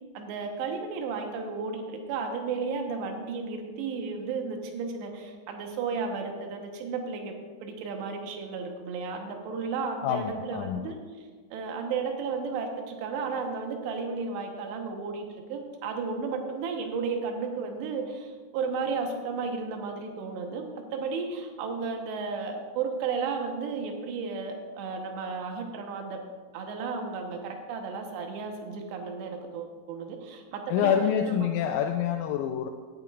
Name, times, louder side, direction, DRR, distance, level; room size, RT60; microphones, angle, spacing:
voice 1, 0.1-7.3 7.6-26.2 26.5-31.5, right 5 dB, 70° right, 3 dB, 2.8 m, -33 dB
voice 2, 10.0-10.9 30.7-32.7, left 9 dB, 90° left, 4 dB, 3.3 m, -27 dB
16.0 x 10.5 x 2.4 m, 1.5 s
omnidirectional pair, 5.9 m